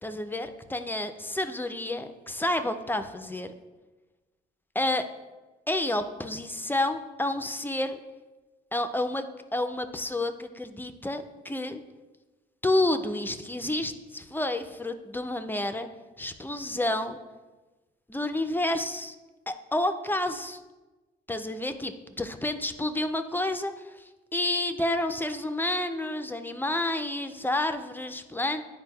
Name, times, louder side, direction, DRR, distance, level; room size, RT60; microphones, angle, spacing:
voice 1, 0.0-3.5 4.7-5.1 5.7-8.0 8.7-11.8 12.6-15.9 16.2-17.2 18.1-19.2 19.5-20.6 21.3-28.6, left 1 dB, 10° left, 8 dB, 0.4 m, -30 dB
9.6 x 4.5 x 2.3 m, 1.2 s
cardioid pair, 90°, 20 cm